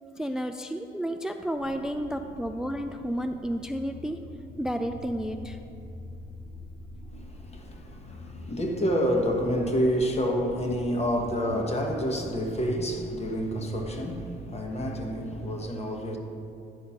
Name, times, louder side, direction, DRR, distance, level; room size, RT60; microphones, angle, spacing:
voice 1, 0.0-4.2 4.6-5.6, equal, 5° right, 0.3 m, -31 dB
sound 1, 1.6-15.7, left 1 dB, 55° left, 1.1 m, -45 dB
voice 2, 7.1-16.2, equal, 30° left, 1.2 m, -28 dB
10.0 x 4.3 x 5.6 m
cardioid pair, 90°, 20 cm